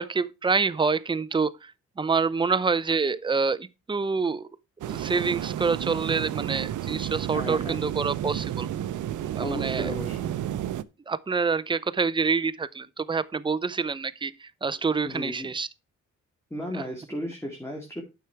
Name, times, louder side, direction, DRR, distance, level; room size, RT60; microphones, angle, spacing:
voice 1, 0.0-4.5 4.9-8.7 9.4-9.9 11.1-15.7 16.7-16.8, right 4 dB, 15° right, 0.5 m, -27 dB
sound 1, 4.8-10.8, right 11 dB, 75° right, 0.6 m, -31 dB
voice 2, 7.3-7.8 9.4-10.3 15.0-15.5 16.5-18.0, equal, 10° left, 2.2 m, -34 dB
9.4 x 6.0 x 4.6 m
cardioid pair, 80°, 30 cm